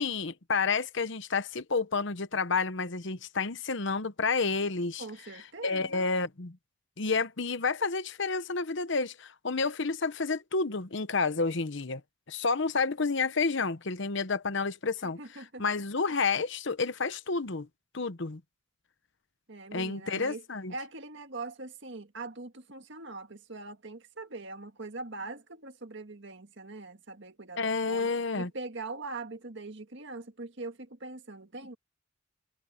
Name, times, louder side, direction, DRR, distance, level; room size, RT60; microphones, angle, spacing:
voice 1, 0.0-5.0 5.6-6.6 7.0-12.0 12.3-15.2 15.6-17.7 17.9-18.4 19.7-20.7 27.6-28.5, left 4 dB, 60° left, 1.0 m, -30 dB
voice 2, 5.0-6.1 15.0-15.6 19.5-20.4 20.7-28.1 28.3-31.8, right 3 dB, 60° right, 1.8 m, -42 dB
head